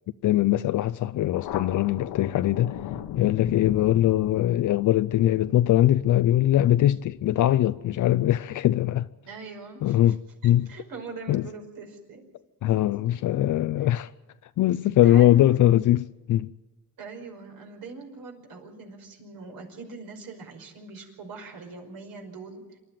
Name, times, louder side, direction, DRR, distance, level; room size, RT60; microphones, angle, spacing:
voice 1, 0.2-2.8 3.2-9.1 9.8-10.7 11.3-11.4 12.6-14.1 14.6-16.5, left 13 dB, 55° left, 0.6 m, -21 dB
Thunder, 1.3-8.4, left 10 dB, 75° left, 1.3 m, -38 dB
voice 2, 9.2-10.2 10.4-12.2 14.9-15.5 17.0-22.8, right 4 dB, 65° right, 5.4 m, -42 dB
27.0 x 12.0 x 9.1 m
cardioid pair, 100°, 37 cm